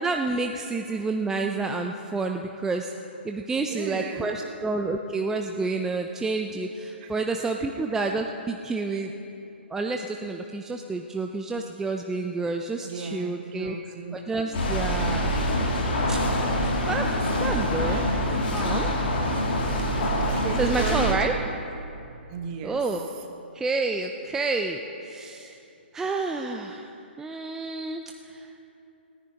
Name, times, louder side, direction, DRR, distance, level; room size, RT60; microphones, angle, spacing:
voice 1, 0.0-2.9 3.2-9.1 9.7-13.8 14.1-15.3 16.1-16.2 16.9-18.0 18.5-18.9 19.9-20.2 20.5-21.3 22.6-23.1 23.5-25.6 25.9-26.9 27.2-28.7, right 3 dB, 10° right, 3 dB, 0.5 m, -29 dB
voice 2, 3.6-4.5 7.0-7.1 12.8-14.2 14.4-14.6 17.8-18.1 20.2-21.2 22.3-22.8, right 6 dB, 35° right, 5 dB, 1.3 m, -36 dB
sound 1, 14.5-21.1, equal, 60° left, 2.7 m, -25 dB
29.0 x 10.0 x 3.0 m, 2.8 s
hypercardioid pair, 130°, 6 cm